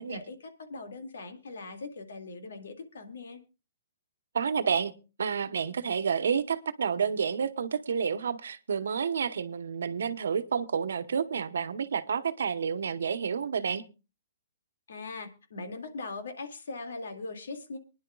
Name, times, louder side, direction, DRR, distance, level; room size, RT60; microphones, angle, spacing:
voice 1, 0.0-3.4 14.9-17.8, left 3 dB, 80° left, 6 dB, 2.2 m, -40 dB
voice 2, 4.3-4.9 5.2-13.8, right 6 dB, 75° right, 11 dB, 1.0 m, -29 dB
24.0 x 10.5 x 2.3 m, 0.29 s
hypercardioid pair, 160°, 0 cm